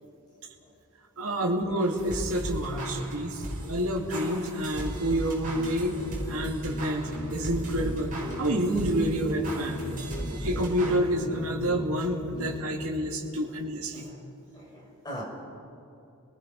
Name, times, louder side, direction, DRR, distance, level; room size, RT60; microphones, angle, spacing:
voice 1, 1.2-6.0 6.3-8.1 8.4-9.8 10.3-14.1, right 1 dB, 75° right, 0 dB, 2.4 m, -28 dB
sound 1, 1.8-11.0, right 1 dB, 40° right, 5.6 m, -37 dB
sound 2, 5.4-12.8, equal, 90° left, 5.6 m, -36 dB
voice 2, 14.5-15.2, equal, 20° left, -3 dB, 6.0 m, -41 dB
30.0 x 19.0 x 5.4 m, 2.7 s
head